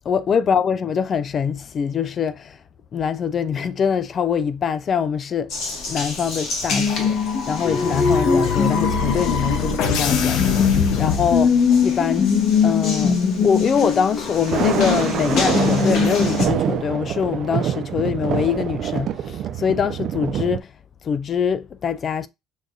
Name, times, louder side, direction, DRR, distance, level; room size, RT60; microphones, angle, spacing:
voice 1, 0.1-2.6 2.9-5.5 5.9-12.3 12.6-20.7 21.0-22.3, left 7 dB, 35° left, 0.3 m, -24 dB
Water tap faucet, 5.5-16.5, left 5 dB, 60° left, 1.6 m, -21 dB
sound 1, 6.9-11.9, left 6 dB, 75° left, 0.7 m, -24 dB
Thunder, 14.4-20.6, right 9 dB, 45° right, 0.3 m, -25 dB
6.2 x 2.6 x 2.2 m
cardioid pair, 150°, 0 cm